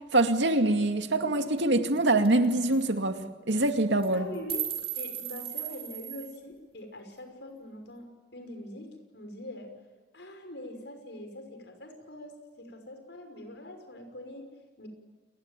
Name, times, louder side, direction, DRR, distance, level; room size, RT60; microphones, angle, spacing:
voice 1, 0.1-3.2 3.5-4.3, right 2 dB, 85° right, 6 dB, 2.3 m, -24 dB
sound 1, 1.6-1.7 1.9-2.0 2.2-2.5 2.7-2.9 3.5-3.7 4.0-6.3, right 11 dB, 35° right, 5.0 m, -36 dB
voice 2, 4.1-4.6 5.0-9.7 10.1-14.5 14.8-14.9, left 1 dB, 75° left, 6 dB, 5.9 m, -43 dB
29.5 x 21.0 x 9.2 m, 1.4 s
head